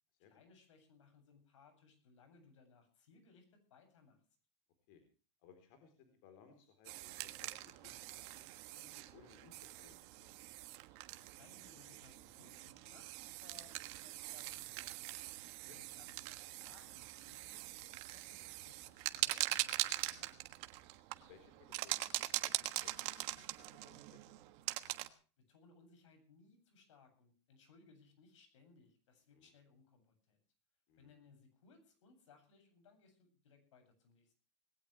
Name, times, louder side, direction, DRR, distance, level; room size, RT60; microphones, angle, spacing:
voice 1, 0.2-4.2 11.3-15.2 15.7-20.4 25.4-30.4 31.0-34.3, left 4 dB, 85° left, 8 dB, 7.9 m, -65 dB
voice 2, 5.4-10.3 15.7-15.8 21.1-24.3 29.3-29.5 30.9-31.1, left 7 dB, 50° left, 7 dB, 3.9 m, -64 dB
sound 1, 6.8-25.1, right 18 dB, 40° right, 1.4 m, -43 dB
20.0 x 17.5 x 3.3 m, 0.39 s
supercardioid pair, 160°, 15 cm